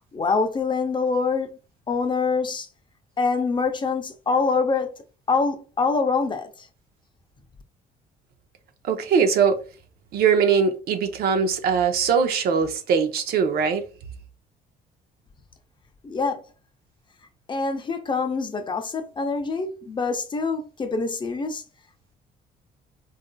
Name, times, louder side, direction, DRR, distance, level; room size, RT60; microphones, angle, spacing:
voice 1, 0.1-1.5 1.9-2.7 3.2-4.9 5.3-6.7 16.0-16.4 17.5-21.6, left 4 dB, 30° left, 0.6 m, -25 dB
voice 2, 8.9-9.6 10.1-13.8, right 6 dB, 65° right, 0.6 m, -21 dB
3.9 x 2.5 x 2.2 m
cardioid pair, 110°, 17 cm